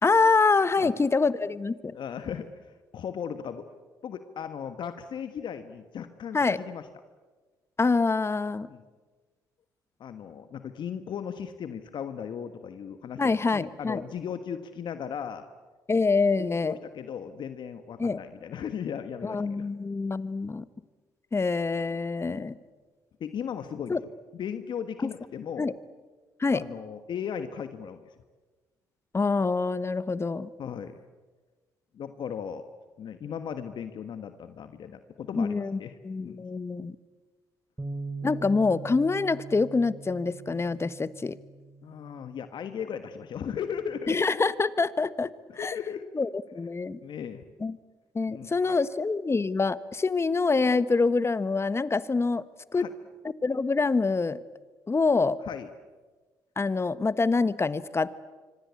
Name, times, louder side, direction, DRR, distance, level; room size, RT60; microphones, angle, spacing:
voice 1, 0.0-1.9 6.3-6.6 7.8-8.7 13.2-14.0 15.9-16.8 18.0-18.2 19.2-20.6 21.3-22.6 23.9-24.0 25.0-25.1 25.6-25.7 26.4-26.6 29.1-30.5 35.3-36.9 38.2-41.4 44.1-45.3 45.5-45.7 46.1-47.0 47.6-47.8 48.1-52.4 52.7-52.9 53.4-54.4 54.9-55.4 56.6-58.2, left 4 dB, 30° left, 15 dB, 1.3 m, -25 dB
voice 2, 1.9-2.5 2.9-3.7 4.0-6.9 8.7-8.8 10.0-15.5 16.4-19.7 22.2-22.5 23.2-24.0 24.3-25.8 26.5-28.0 30.6-31.0 31.9-32.6 33.0-36.4 41.8-44.5 45.5-46.1 47.0-47.4 48.3-48.8 52.7-52.9 55.5-55.7, left 8 dB, 60° left, 9 dB, 1.5 m, -37 dB
Bass guitar, 37.8-44.0, right 3 dB, 15° right, 4.4 m, -42 dB
25.5 x 25.5 x 8.4 m, 1.3 s
supercardioid pair, 55°, 9 cm